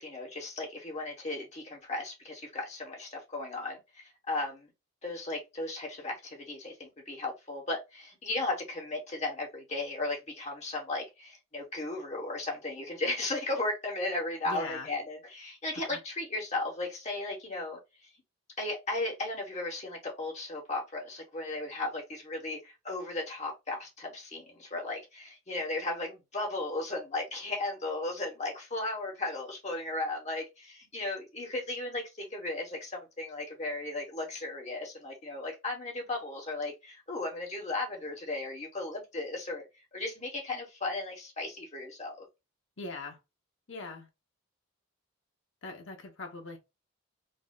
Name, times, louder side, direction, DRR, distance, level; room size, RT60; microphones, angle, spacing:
voice 1, 0.0-4.7 5.0-18.1 18.6-39.7 39.9-42.2, left 2 dB, 30° left, 1.2 m, -36 dB
voice 2, 14.5-14.9 15.9-16.0 42.8-43.2 43.7-44.1 45.6-46.6, left 3 dB, 65° left, 1.2 m, -40 dB
4.0 x 2.2 x 3.8 m
head